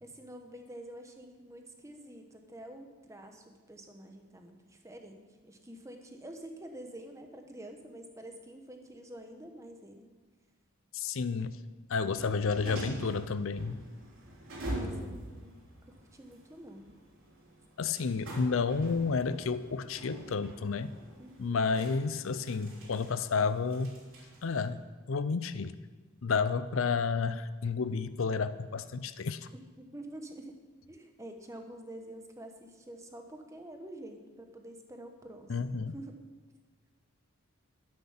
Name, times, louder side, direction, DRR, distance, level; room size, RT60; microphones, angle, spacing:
voice 1, 0.0-10.1 14.6-16.9 21.2-21.6 29.5-30.5 30.9-36.1, right 1 dB, 15° right, 4 dB, 1.2 m, -48 dB
voice 2, 10.9-11.6 11.9-13.8 17.8-21.0 21.4-24.0 24.4-24.8 25.1-25.7 26.2-29.5 35.5-35.9, left 5 dB, 65° left, 13 dB, 0.5 m, -31 dB
sound 1, 11.9-24.7, right 1 dB, 65° right, 3.6 m, -45 dB
12.0 x 10.0 x 5.7 m, 1.3 s
head